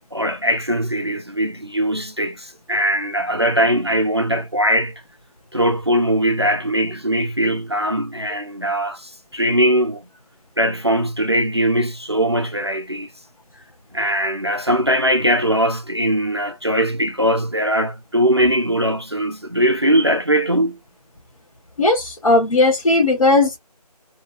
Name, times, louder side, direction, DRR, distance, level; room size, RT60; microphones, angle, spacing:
voice 1, 0.1-4.9 5.5-10.0 10.6-13.1 13.9-20.8, equal, 40° right, 0.4 m, -20 dB
voice 2, 21.8-23.6, left 2 dB, 55° left, 1.0 m, -16 dB
2.7 x 2.7 x 2.4 m
figure-of-eight pair, 180°, 21 cm